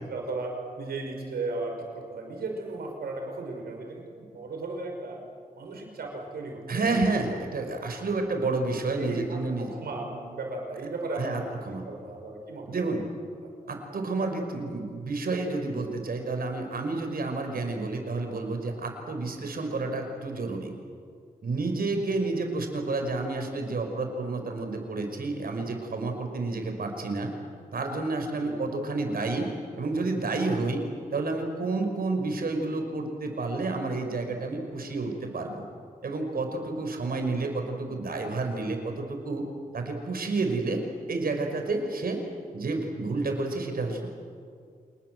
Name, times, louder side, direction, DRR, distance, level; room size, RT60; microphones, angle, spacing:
voice 1, 0.1-5.2 5.6-6.6 6.9-7.1 9.0-13.0 13.4-13.5 28.3-28.6, right 2 dB, 90° right, 1 dB, 5.8 m, -36 dB
voice 2, 6.7-9.7 11.2-11.8 12.7-13.0 13.7-20.7 21.4-27.3 27.7-29.5 29.8-30.8 31.1-35.6 36.0-39.4 39.7-40.8 41.1-42.2 42.5-44.2, right 3 dB, 70° right, 4 dB, 5.4 m, -30 dB
27.0 x 20.5 x 7.9 m, 2.2 s
cardioid pair, 45°, 16 cm